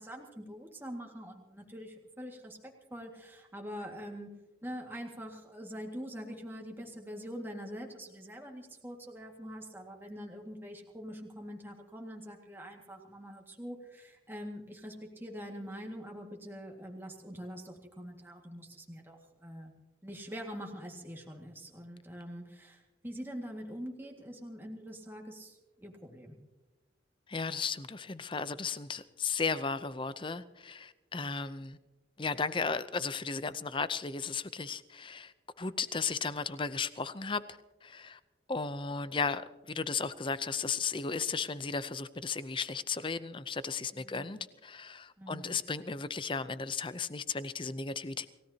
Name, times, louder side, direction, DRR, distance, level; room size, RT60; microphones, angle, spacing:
voice 1, 0.0-4.3 4.6-19.7 20.0-26.4 43.9-44.4 45.2-45.6, equal, 10° right, 1.9 m, -44 dB
voice 2, 27.3-31.8 32.2-35.3 35.6-37.4 37.8-38.2 38.5-39.4 39.7-48.3, left 5 dB, 25° left, 0.6 m, -35 dB
29.0 x 16.5 x 2.9 m
head